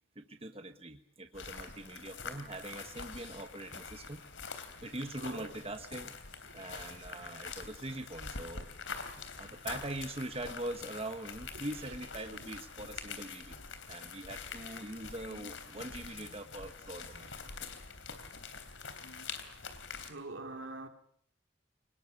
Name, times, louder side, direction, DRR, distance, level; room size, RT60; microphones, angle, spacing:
voice 1, 0.1-6.2 6.5-8.7 9.4-13.6 13.9-17.3, right 1 dB, 30° right, 1.3 m, -43 dB
sound 1, 1.3-20.1, left 5 dB, 85° left, 3.4 m, -45 dB
voice 2, 5.2-5.5 6.5-6.7 9.3-9.5 11.8-11.9 20.0-20.9, right 2 dB, 85° right, 2.9 m, -45 dB
25.5 x 20.5 x 8.4 m
head